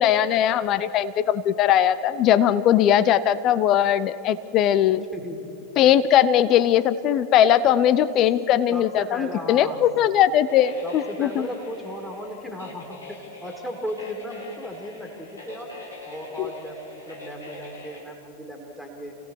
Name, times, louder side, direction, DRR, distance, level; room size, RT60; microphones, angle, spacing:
voice 1, 0.0-5.0 5.8-11.5 16.4-16.5, left 10 dB, 35° left, 14 dB, 0.7 m, -20 dB
voice 2, 5.1-5.5 8.7-9.8 10.8-15.8 16.1-19.2, equal, 5° left, 1 dB, 2.8 m, -36 dB
sound 1, 10.5-18.0, left 2 dB, 80° left, 4.6 m, -43 dB
28.0 x 17.5 x 6.5 m, 2.9 s
figure-of-eight pair, 90°, 0 cm